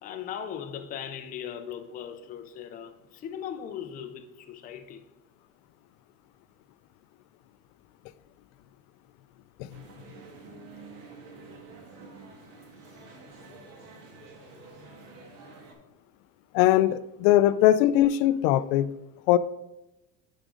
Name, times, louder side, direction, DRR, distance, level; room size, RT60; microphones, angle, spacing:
voice 1, 0.0-5.1, left 8 dB, 25° left, 0.4 m, -38 dB
sound 1, 9.7-15.7, right 4 dB, 60° right, 1.6 m, -48 dB
voice 2, 16.5-18.9 19.3-19.4, left 13 dB, 75° left, 0.5 m, -20 dB
10.0 x 5.0 x 3.7 m
cardioid pair, 155°, 40 cm